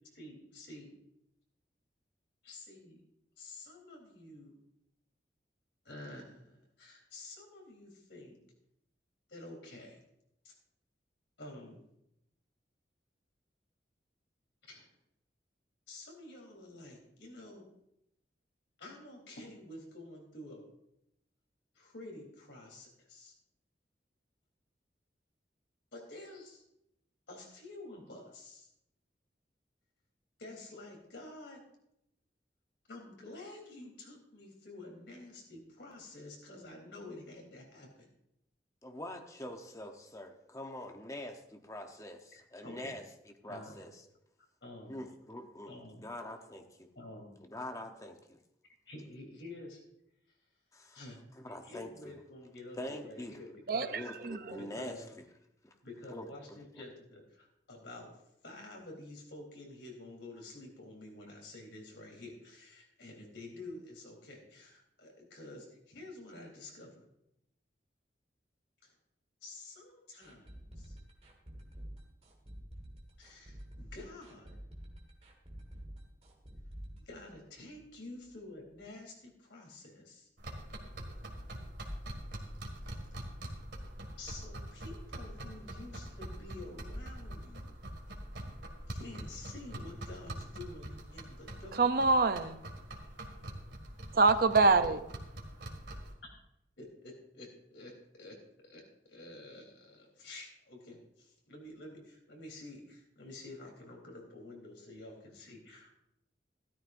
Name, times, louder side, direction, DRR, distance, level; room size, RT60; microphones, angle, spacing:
voice 1, 0.1-0.9 2.5-3.0 3.4-4.5 5.9-8.4 9.3-10.0 10.4-10.5 11.4-11.8 14.7-14.9 15.9-17.7 18.8-20.6 21.8-23.3 25.9-26.6 27.3-28.7 30.4-31.6 32.9-38.1 42.3-43.0 43.5-43.8 44.6-45.0 45.7-46.1 47.0-47.4 48.9-49.8 50.9-51.2 51.6-54.0 54.6-55.1 55.8-58.1 58.4-67.0 68.8-68.9 69.4-70.9 73.2-74.6 77.0-80.3 84.2-87.7 88.9-91.8 96.8-97.9 98.2-98.4 98.7-98.8 99.1-105.9, left 2 dB, 90° left, 3.7 m, -49 dB
voice 2, 38.8-43.0 43.4-43.9 44.9-46.9 47.4-48.4 50.7-51.0 51.4-52.1 52.8-53.4 53.9-55.0 55.6-55.7 56.1-56.6, left 1 dB, 20° left, 0.9 m, -44 dB
voice 3, 53.7-54.6 91.8-92.6 94.1-95.0, right 3 dB, 55° right, 0.6 m, -26 dB
sound 1, 70.2-78.0 78.2-78.3 78.7-78.8, equal, 35° right, 1.8 m, -49 dB
sound 2, 80.4-96.1, right 1 dB, 80° right, 2.0 m, -44 dB
14.0 x 13.0 x 2.6 m
head